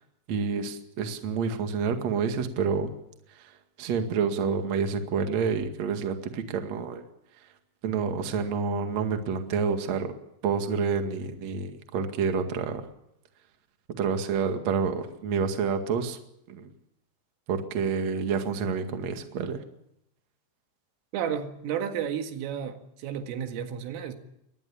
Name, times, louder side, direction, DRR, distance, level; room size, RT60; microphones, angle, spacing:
voice 1, 0.3-2.9 3.3-3.5 3.8-7.0 7.8-10.1 10.4-12.9 14.0-16.2 16.5-16.7 17.5-19.6, right 5 dB, 50° right, 6 dB, 2.5 m, -28 dB
voice 2, 21.1-24.1, right 8 dB, 90° right, 6 dB, 4.5 m, -32 dB
23.0 x 19.0 x 7.1 m, 0.80 s
omnidirectional pair, 5.6 m